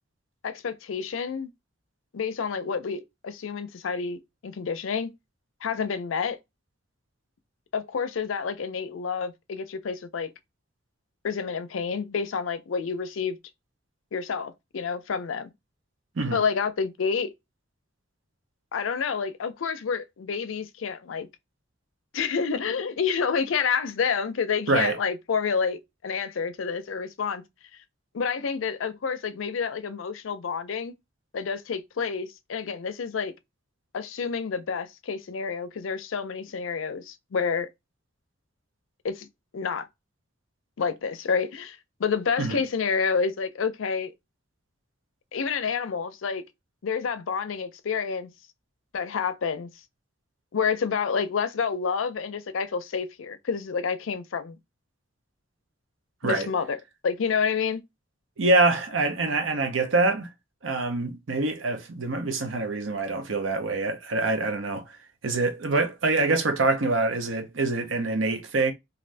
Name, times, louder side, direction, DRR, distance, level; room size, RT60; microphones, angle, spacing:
voice 1, 0.4-1.5 2.1-5.1 5.6-6.4 7.7-10.3 11.2-13.4 14.1-15.5 16.3-17.3 18.7-21.3 22.1-27.4 28.1-30.9 31.3-33.3 33.9-37.7 39.0-39.3 39.5-39.9 40.8-44.1 45.3-46.4 46.8-48.3 48.9-49.7 50.5-54.6 56.2-56.8 57.0-57.8, left 6 dB, 85° left, 0.5 m, -29 dB
voice 2, 58.4-60.3 60.6-65.0 65.2-68.7, right 3 dB, 75° right, 0.7 m, -25 dB
2.6 x 2.5 x 3.2 m
head